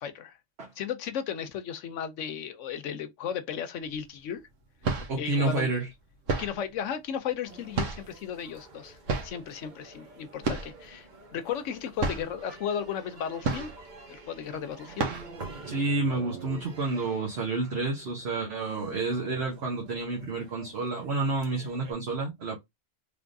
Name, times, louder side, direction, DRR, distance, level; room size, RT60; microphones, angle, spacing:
voice 1, 0.0-0.4 0.8-4.4 5.2-5.7 6.4-9.0 9.2-13.7 14.1-15.1, left 8 dB, 80° left, 1.0 m, -35 dB
Smacks And Thwacks (m), 3.9-4.0 4.6-5.3 6.3-6.7 7.7-8.3 9.1-9.4 10.4-10.9 11.1-11.2 11.6-11.7 12.0-12.4 13.4-14.0 14.4-14.5 15.0-15.4, right 4 dB, 85° right, 1.3 m, -31 dB
voice 2, 5.1-5.9 15.7-22.6, right 3 dB, 60° right, 1.3 m, -29 dB
sound 1, 7.4-21.9, right 3 dB, 40° right, 1.0 m, -48 dB
3.4 x 3.4 x 2.6 m
omnidirectional pair, 1.3 m